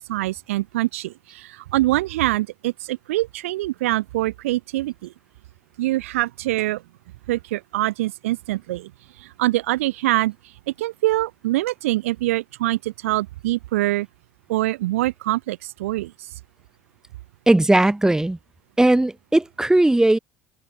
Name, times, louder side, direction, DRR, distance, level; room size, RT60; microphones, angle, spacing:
voice 1, 0.0-5.1 5.8-6.8 7.3-8.9 9.2-10.3 10.8-14.1 14.5-16.3, right 17 dB, 70° right, 1.1 m, -24 dB
voice 2, 17.5-18.4 18.8-20.2, right 1 dB, 10° right, 2.6 m, -17 dB
figure-of-eight pair, 65°, 8 cm